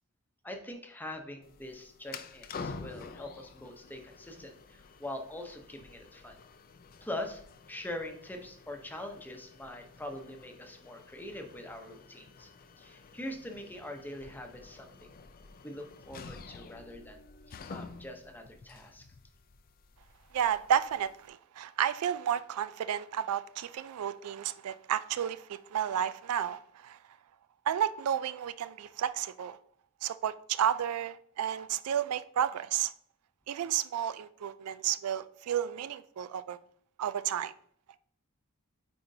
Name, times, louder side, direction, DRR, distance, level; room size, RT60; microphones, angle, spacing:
voice 1, 0.4-6.4 7.0-7.4 7.7-12.5 12.8-15.1 15.6-17.2 17.5-19.1, left 1 dB, 10° left, 0.7 m, -43 dB
sound 1, 1.4-21.3, left 4 dB, 40° left, 0.4 m, -49 dB
voice 2, 20.3-27.0 27.7-29.6 30.0-32.9 33.5-36.6 37.0-37.5, right 9 dB, 80° right, 0.3 m, -32 dB
9.0 x 4.3 x 2.7 m
head